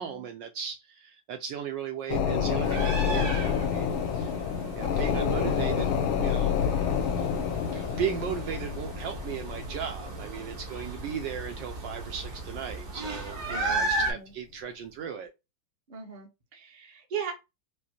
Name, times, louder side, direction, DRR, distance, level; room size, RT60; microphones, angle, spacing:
voice 1, 0.0-4.3 4.7-6.6 7.6-15.3, right 8 dB, 75° right, 1.1 m, -36 dB
sound 1, 2.1-12.1 12.5-12.6, left 8 dB, 80° left, 1.4 m, -29 dB
sound 2, 2.6-14.1, right 2 dB, 55° right, 1.6 m, -35 dB
voice 2, 4.3-4.7 13.5-14.3 15.9-17.3, right 7 dB, 35° right, 0.7 m, -39 dB
5.2 x 2.1 x 2.8 m
omnidirectional pair, 2.3 m